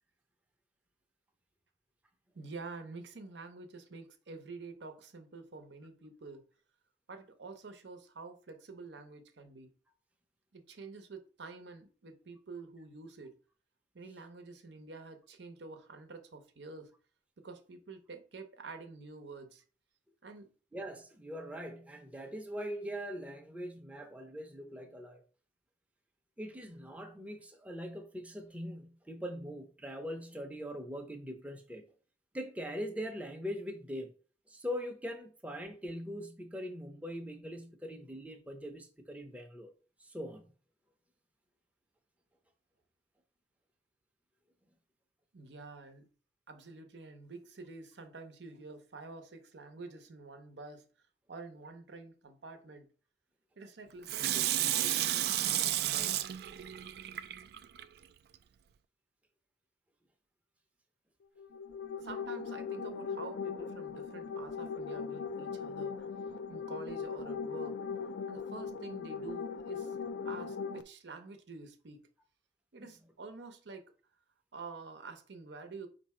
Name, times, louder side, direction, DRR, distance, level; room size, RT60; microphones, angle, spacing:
voice 1, 2.3-6.5 7.1-9.7 10.5-13.4 13.9-16.9 17.4-19.6 20.2-20.5 45.3-46.1 46.5-50.9 51.3-52.9 53.6-56.2 62.0-66.1 66.5-67.8 68.3-70.0 70.2-72.1 72.7-73.9 74.5-75.9, right 3 dB, 80° right, 0.7 m, -48 dB
voice 2, 20.7-25.2 26.4-31.8 32.3-34.1 34.5-39.7 40.0-40.5 72.8-72.9, equal, 10° right, 0.6 m, -42 dB
Water tap faucet / Sink (filling or washing), 54.1-57.8 58.3-58.4, right 12 dB, 60° right, 0.3 m, -32 dB
sound 1, 61.4-70.8, left 5 dB, 70° left, 0.4 m, -39 dB
4.6 x 2.6 x 4.2 m
head